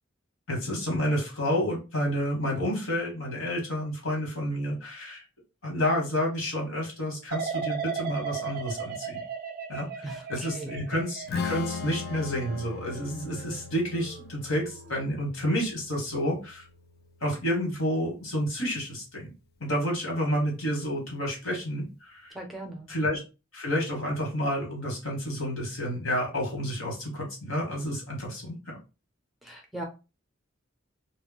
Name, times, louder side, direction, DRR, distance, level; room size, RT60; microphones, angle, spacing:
voice 1, 0.5-5.2 5.6-9.2 9.7-16.6 17.2-19.3 19.6-22.3 22.9-23.2 23.5-28.6, equal, 70° left, -1 dB, 1.3 m, -30 dB
sound 1, 7.3-14.2 14.7-15.1, right 6 dB, 45° right, 0.3 m, -37 dB
voice 2, 10.0-10.8 22.3-22.9 29.4-29.8, right 1 dB, ahead, 1 dB, 0.6 m, -39 dB
Strum, 11.3-17.6, left 5 dB, 45° left, 0.3 m, -39 dB
2.3 x 2.1 x 3.7 m, 0.30 s
head